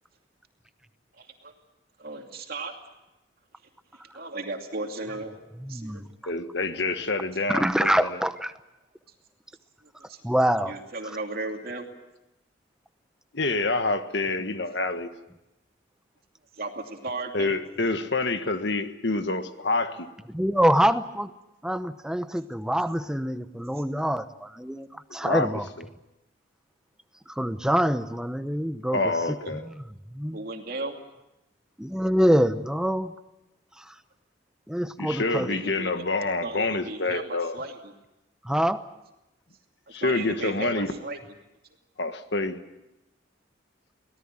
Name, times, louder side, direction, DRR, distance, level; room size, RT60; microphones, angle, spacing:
voice 1, 1.2-1.5 2.0-2.7 4.1-5.4 5.7-5.9 10.1-10.2 10.7-11.9 16.6-17.6 29.4-29.5 30.3-31.0 35.3-37.9 40.0-41.2, right 2 dB, 50° right, 3 dB, 2.6 m, -35 dB
voice 2, 5.6-6.1 7.5-8.5 10.2-10.7 20.3-21.3 21.6-25.7 27.3-29.0 29.3-29.8 30.1-30.4 31.8-33.1 33.8-33.9 34.7-35.5 38.4-38.8, equal, 5° right, 10 dB, 0.9 m, -25 dB
voice 3, 6.3-8.2 13.3-15.1 17.3-20.1 25.1-25.9 28.9-29.6 35.0-37.6 39.9-40.9 42.0-42.6, left 2 dB, 60° left, 8 dB, 1.5 m, -27 dB
24.5 x 18.0 x 8.9 m, 0.96 s
head